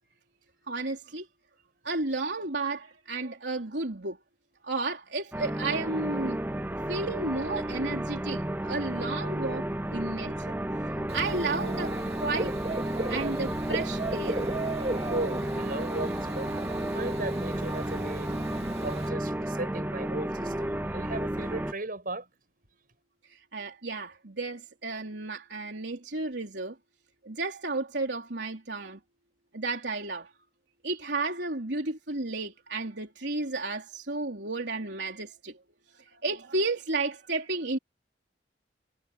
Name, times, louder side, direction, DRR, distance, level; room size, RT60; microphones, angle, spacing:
voice 1, 0.7-1.3 1.8-4.2 4.6-6.4 6.9-10.3 11.0-12.0 12.2-12.5 13.1-14.5 23.3-26.8 27.2-29.0 29.5-30.3 30.8-35.6 35.9-37.8, right 3 dB, 85° right, 3.5 m, -32 dB
sound 1, 5.3-21.7, right 1 dB, 10° right, 0.7 m, -32 dB
Dog / Bird, 11.1-19.1, right 2 dB, 35° right, 2.3 m, -36 dB
voice 2, 15.1-18.4 18.8-22.3, right 2 dB, 55° right, 7.6 m, -36 dB
head